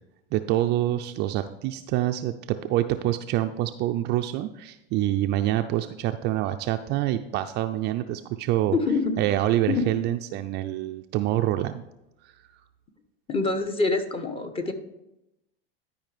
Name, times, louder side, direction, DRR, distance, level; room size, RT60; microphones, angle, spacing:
voice 1, 0.3-8.8 9.2-11.8 12.2-12.3, right 14 dB, 35° right, 7 dB, 0.4 m, -26 dB
voice 2, 8.7-9.1 9.7-9.9 13.3-14.7, left 3 dB, 20° left, 8 dB, 0.9 m, -25 dB
12.0 x 5.0 x 3.3 m, 0.89 s
hypercardioid pair, 100°, 30 cm